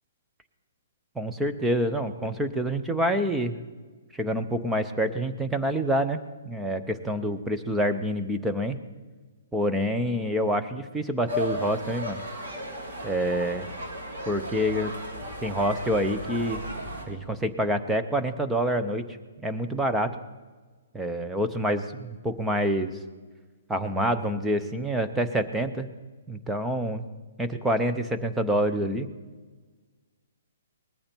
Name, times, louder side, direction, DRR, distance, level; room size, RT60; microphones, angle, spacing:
voice 1, 1.2-3.6 4.1-6.2 6.4-8.8 9.5-12.2 13.0-13.7 14.3-14.9 15.4-16.6 17.1-19.0 19.4-20.1 20.9-23.0 23.7-25.9 26.3-27.0 27.4-29.1, equal, 5° right, 8 dB, 0.6 m, -27 dB
sound 1, 11.3-17.1, equal, 60° right, 3.2 m, -35 dB
19.5 x 14.0 x 4.4 m, 1.4 s
hypercardioid pair, 175°, 0 cm